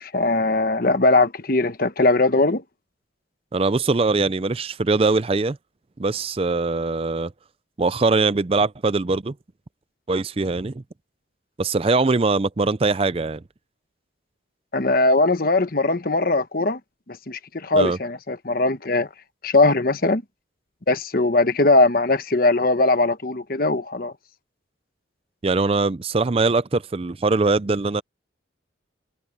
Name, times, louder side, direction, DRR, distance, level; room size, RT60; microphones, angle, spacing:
voice 1, 0.0-2.6 14.7-16.8 17.1-19.1 19.4-20.2 20.9-24.1, left 2 dB, 50° left, 1.1 m, -20 dB
voice 2, 3.5-5.6 6.0-7.3 7.8-9.3 10.1-10.8 11.6-13.4 17.7-18.0 25.4-28.0, right 3 dB, 30° right, 0.4 m, -22 dB
head